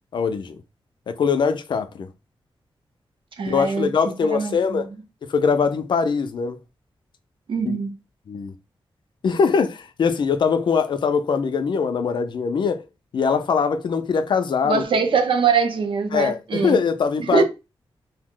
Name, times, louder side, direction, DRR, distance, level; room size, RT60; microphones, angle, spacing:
voice 1, 0.1-0.6 1.1-2.1 3.5-4.9 5.3-6.6 7.7-7.8 8.3-8.5 9.2-12.8 13.1-14.8 16.1-17.4, left 5 dB, 55° left, 0.4 m, -22 dB
voice 2, 3.4-3.9 4.2-4.8 7.5-7.9 14.6-16.8 17.3-17.4, right 5 dB, 65° right, 0.6 m, -22 dB
2.7 x 2.0 x 3.6 m
wide cardioid pair, 165°, 9 cm